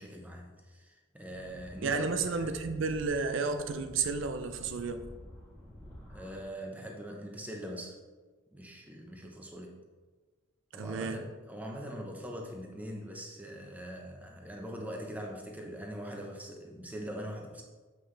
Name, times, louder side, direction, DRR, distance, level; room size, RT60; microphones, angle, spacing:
voice 1, 0.0-2.6 6.1-8.0 8.5-9.8 10.7-17.6, equal, 10° right, 0 dB, 0.9 m, -42 dB
sound 1, 1.3-6.4, left 1 dB, 10° left, 1.5 m, -50 dB
voice 2, 1.8-5.0 10.7-11.2, right 4 dB, 65° right, 8 dB, 0.5 m, -32 dB
7.6 x 5.6 x 3.3 m, 1.3 s
head